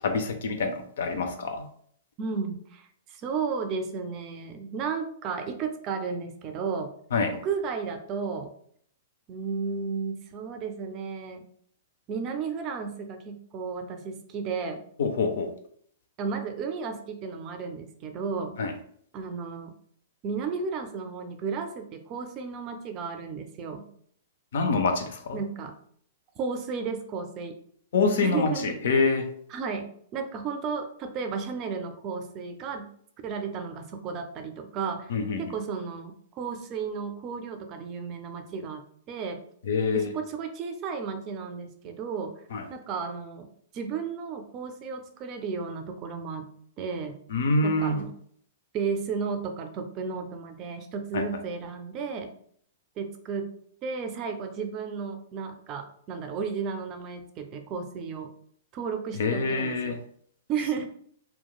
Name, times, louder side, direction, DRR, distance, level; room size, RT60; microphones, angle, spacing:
voice 1, 0.0-1.7 7.1-7.3 15.0-15.5 18.6-18.7 24.5-25.4 27.9-29.3 35.1-35.5 39.7-40.1 42.5-42.6 47.3-48.0 51.1-51.2 59.2-60.0, left 3 dB, 65° left, 6 dB, 0.4 m, -26 dB
voice 2, 2.2-6.9 7.4-8.5 9.3-11.4 12.1-14.8 16.2-18.6 19.1-19.7 20.2-23.9 25.3-25.7 26.4-27.6 28.2-28.8 29.5-32.9 33.2-35.1 35.4-39.4 39.9-42.3 42.7-43.5 43.7-46.5 46.8-47.2 47.6-48.1 48.7-52.3 53.0-53.5 53.8-58.3 58.7-59.9 60.5-60.9, right 5 dB, 35° right, 6 dB, 0.4 m, -33 dB
2.9 x 2.2 x 2.2 m, 0.63 s
hypercardioid pair, 115°, 0 cm